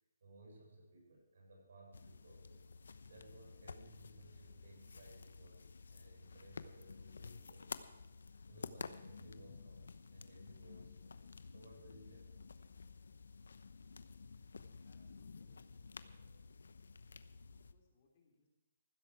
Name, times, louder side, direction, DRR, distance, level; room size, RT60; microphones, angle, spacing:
voice 1, 0.2-2.7 3.1-7.9 8.5-12.5 17.4-17.5, right 2 dB, 65° right, -1 dB, 6.8 m, -60 dB
sound 1, 1.9-17.7, left 4 dB, 85° left, 0.9 m, -52 dB
voice 2, 14.8-16.2 17.5-18.5, left 4 dB, 30° left, 0 dB, 3.3 m, -75 dB
15.0 x 13.5 x 4.8 m, 0.97 s
hypercardioid pair, 170°, 0 cm